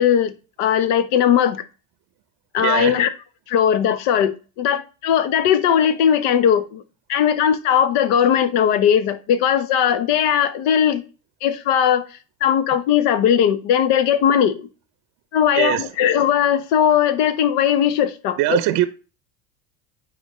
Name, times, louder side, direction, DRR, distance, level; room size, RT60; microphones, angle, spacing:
voice 1, 0.0-1.6 2.5-3.1 3.5-6.8 7.1-11.0 11.4-12.0 12.4-14.7 15.3-18.6, left 9 dB, 60° left, 1.1 m, -18 dB
voice 2, 2.6-3.0 15.5-15.8 18.4-18.9, right 15 dB, 50° right, 0.7 m, -21 dB
9.2 x 4.1 x 3.2 m
hypercardioid pair, 85°, 48 cm